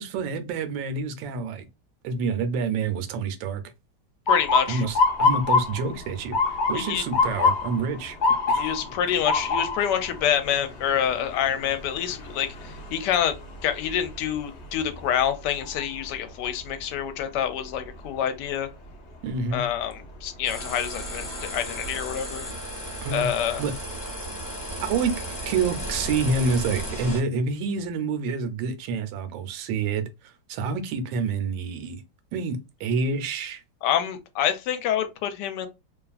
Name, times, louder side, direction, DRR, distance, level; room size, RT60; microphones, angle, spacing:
voice 1, 0.0-1.7 2.0-3.6 4.7-8.2 8.5-8.7 19.2-19.7 23.0-23.3 23.6-23.7 24.8-32.0 32.3-33.6, right 4 dB, 85° right, 1.3 m, -28 dB
voice 2, 4.3-4.8 6.7-7.1 8.6-13.3 13.6-18.7 19.5-22.5 23.1-23.6 33.8-35.7, left 9 dB, 75° left, 1.1 m, -27 dB
Motor vehicle (road) / Siren, 4.3-16.2 16.6-17.1 17.8-18.1 20.0-20.3 20.8-20.9 21.3-22.0, left 4 dB, 55° left, 0.8 m, -27 dB
sound 1, 20.4-27.2, equal, 15° left, 0.8 m, -34 dB
2.9 x 2.4 x 2.3 m
omnidirectional pair, 2.0 m